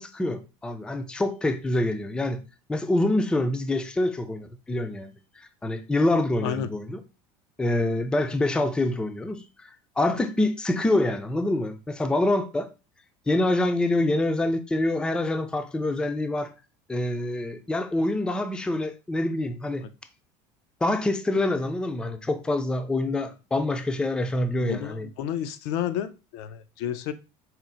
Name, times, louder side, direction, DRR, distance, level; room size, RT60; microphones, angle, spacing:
voice 1, 0.0-2.4 2.7-7.0 7.6-12.7 13.3-16.5 16.9-19.9 20.8-25.1, left 2 dB, 5° left, 0.3 m, -26 dB
voice 2, 24.6-27.1, left 9 dB, 80° left, 0.5 m, -31 dB
4.3 x 2.0 x 3.8 m
cardioid pair, 135°, 14 cm